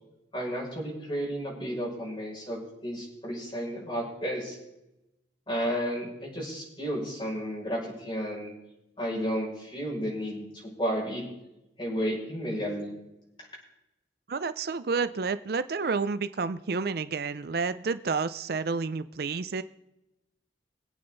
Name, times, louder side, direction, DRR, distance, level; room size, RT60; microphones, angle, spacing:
voice 1, 0.3-4.6 5.5-8.5 9.0-11.2 11.8-12.9, equal, 25° left, -4 dB, 6.2 m, -32 dB
voice 2, 14.3-19.6, right 4 dB, 55° right, 13 dB, 0.5 m, -30 dB
24.0 x 8.8 x 4.0 m, 0.89 s
head